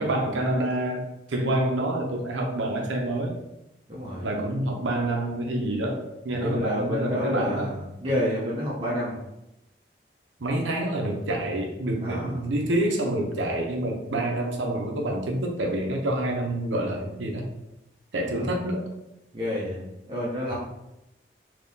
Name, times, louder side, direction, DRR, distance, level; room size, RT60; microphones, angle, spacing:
voice 1, 0.0-3.4 4.2-7.7 8.0-8.2 10.4-17.5 18.1-18.8, right 1 dB, 85° right, 1 dB, 0.7 m, -27 dB
voice 2, 3.9-4.3 6.3-9.2 12.0-12.4 18.3-18.5 19.3-20.5, left 1 dB, 25° right, -7 dB, 0.6 m, -29 dB
3.6 x 2.8 x 2.7 m, 0.91 s
head